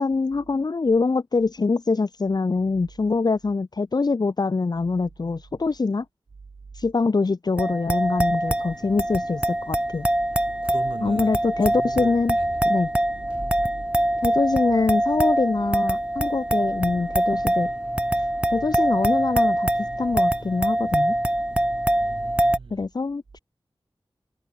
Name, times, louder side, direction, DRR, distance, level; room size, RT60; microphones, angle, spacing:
voice 1, 0.0-6.0 6.7-10.1 11.0-12.4 12.6-12.9 14.2-17.7 18.1-18.3 18.5-19.7 20.0-21.1 22.7-23.4, left 4 dB, 50° left, 0.7 m, -24 dB
sound 1, 7.6-22.6, right 1 dB, 10° right, 0.9 m, -24 dB
voice 2, 10.6-12.6 13.5-13.7 22.0-22.9, right 4 dB, 75° right, 1.4 m, -39 dB
wide cardioid pair, 75°, 9 cm